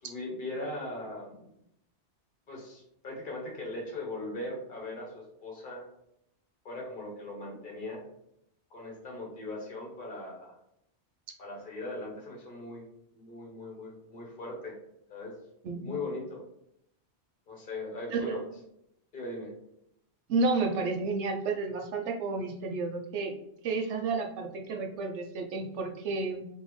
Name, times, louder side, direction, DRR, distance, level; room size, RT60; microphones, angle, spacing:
voice 1, 0.0-1.5 2.5-5.8 6.6-8.0 8.7-10.5 11.4-12.8 13.1-14.8 15.1-15.3 15.8-16.4 17.5-18.4 19.1-19.5, left 2 dB, 50° left, -1 dB, 1.2 m, -39 dB
voice 2, 15.6-16.0 18.1-18.4 20.3-23.3 23.6-26.4, right 3 dB, 85° right, 3 dB, 1.0 m, -31 dB
3.9 x 3.0 x 3.1 m, 0.77 s
omnidirectional pair, 1.2 m